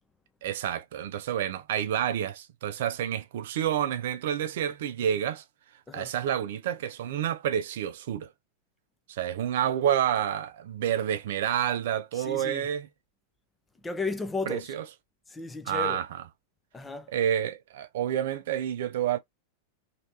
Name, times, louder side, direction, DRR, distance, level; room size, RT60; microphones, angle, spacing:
voice 1, 0.4-5.4 5.9-8.3 9.1-12.9 14.5-14.8 15.7-16.1 17.1-19.2, right 10 dB, 55° right, 0.4 m, -29 dB
voice 2, 12.1-12.7 13.8-14.7 15.3-16.0 16.7-17.1, left 4 dB, 10° left, 0.7 m, -34 dB
3.1 x 2.9 x 2.7 m
figure-of-eight pair, 90°, 0 cm